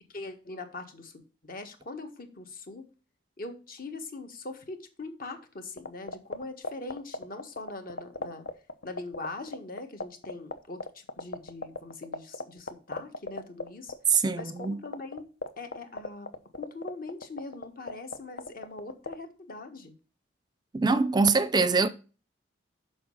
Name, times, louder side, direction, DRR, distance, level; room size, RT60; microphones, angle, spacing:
voice 1, 0.1-1.1 1.4-2.8 3.4-8.4 8.8-13.9 14.4-15.3 15.6-19.9, left 3 dB, 50° left, 1.6 m, -42 dB
sound 1, 5.8-19.1, left 3 dB, 80° left, 1.0 m, -34 dB
voice 2, 14.1-14.8 20.7-21.9, right 4 dB, 20° right, 0.5 m, -24 dB
7.1 x 5.4 x 5.4 m
head